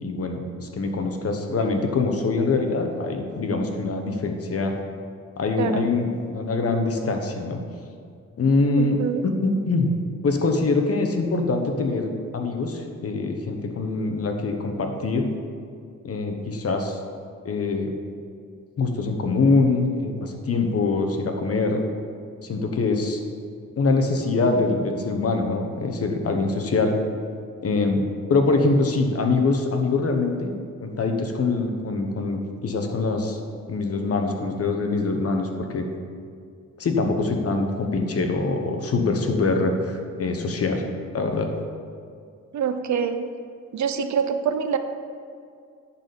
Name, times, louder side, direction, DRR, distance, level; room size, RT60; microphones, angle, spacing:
voice 1, 0.0-4.7 5.4-7.6 8.4-9.0 9.2-9.9 10.2-15.3 16.0-17.0 17.4-17.9 18.8-21.8 22.4-23.2 23.8-26.9 27.6-28.0 28.3-30.5 30.8-33.4 33.7-35.9 36.8-40.8 41.1-41.5, left 3 dB, 50° left, 4 dB, 1.1 m, -24 dB
voice 2, 5.6-5.9 8.8-9.2 42.5-43.3 43.7-44.8, right 7 dB, 70° right, 9 dB, 0.7 m, -25 dB
10.5 x 4.3 x 6.9 m, 2.3 s
cardioid pair, 110°, 29 cm